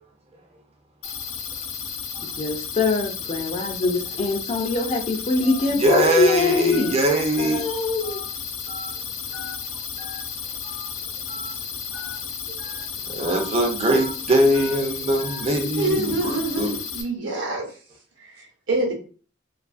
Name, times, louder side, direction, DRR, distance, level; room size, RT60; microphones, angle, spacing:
sound 1, 1.0-17.0, left 6 dB, 85° left, 0.5 m, -33 dB
voice 1, 2.2-6.9 7.4-8.2, left 3 dB, 30° left, 3 dB, 0.4 m, -23 dB
Telephone, 5.4-5.6 6.1-6.3 6.7-6.9 7.4-7.6 8.0-8.3 8.7-8.9 9.3-9.6 10.0-10.2 10.6-10.9 11.3-11.5 11.9-12.2 12.6-12.8 13.2-13.5 13.9-14.1 14.5-14.8 15.2-15.4, left 4 dB, 60° left, 0.9 m, -38 dB
voice 2, 5.7-7.6 13.1-16.8, equal, 30° right, 2 dB, 0.5 m, -22 dB
voice 3, 15.8-17.7 18.3-18.9, right 2 dB, 65° right, 0 dB, 0.8 m, -26 dB
2.4 x 2.4 x 2.4 m, 0.38 s
head